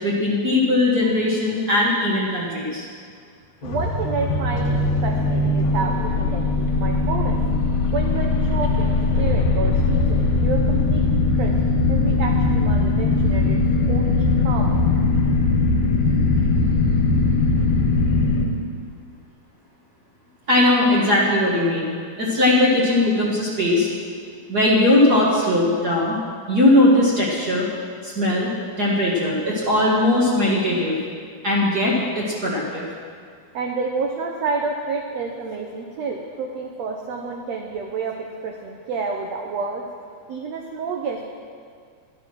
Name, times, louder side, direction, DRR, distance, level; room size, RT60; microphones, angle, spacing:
voice 1, 0.0-2.8 20.5-23.9 24.5-26.2 26.5-27.7 28.0-28.5 28.8-31.0 31.4-32.9, left 1 dB, 50° right, -5 dB, 1.1 m, -19 dB
sound 1, 3.6-18.4, left 3 dB, 70° left, 2.9 m, -20 dB
voice 2, 3.6-7.4 7.9-13.6 13.9-14.8 25.1-25.3 29.9-30.1 30.3-30.4 33.5-39.8 40.3-41.3, right 4 dB, 85° right, 1 dB, 1.4 m, -29 dB
12.0 x 10.0 x 6.1 m, 2.1 s
omnidirectional pair, 4.1 m